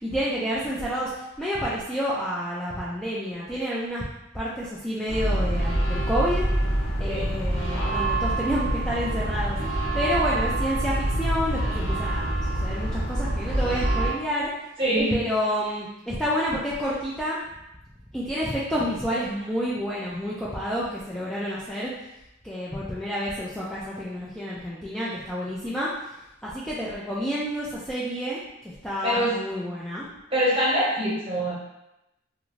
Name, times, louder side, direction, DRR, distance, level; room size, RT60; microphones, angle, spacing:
voice 1, 0.0-4.0 4.3-6.4 7.0-14.5 15.1-17.4 18.1-21.9 22.4-25.9 26.4-30.1, equal, 5° left, -8 dB, 0.3 m, -29 dB
sound 1, 5.1-14.1, right 1 dB, 85° left, 0.9 m, -26 dB
voice 2, 14.8-15.1 29.0-29.3 30.3-31.5, right 1 dB, 30° right, -7 dB, 1.0 m, -24 dB
2.5 x 2.5 x 3.0 m, 0.88 s
head